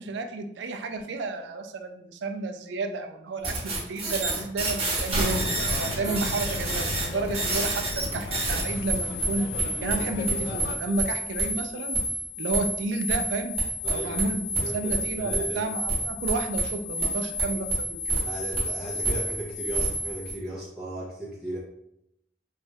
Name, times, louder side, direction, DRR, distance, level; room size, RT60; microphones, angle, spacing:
voice 1, 0.0-12.0 12.4-13.5 13.9-18.2, right 3 dB, 75° right, 6 dB, 0.3 m, -31 dB
sound 1, 3.4-20.3, right 2 dB, 35° right, 1.0 m, -29 dB
sound 2, 5.2-10.8, left 2 dB, 60° left, 0.4 m, -35 dB
voice 2, 13.8-14.3 14.6-15.7 18.2-21.6, right 1 dB, 5° right, -8 dB, 0.5 m, -36 dB
3.1 x 2.3 x 2.7 m, 0.78 s
head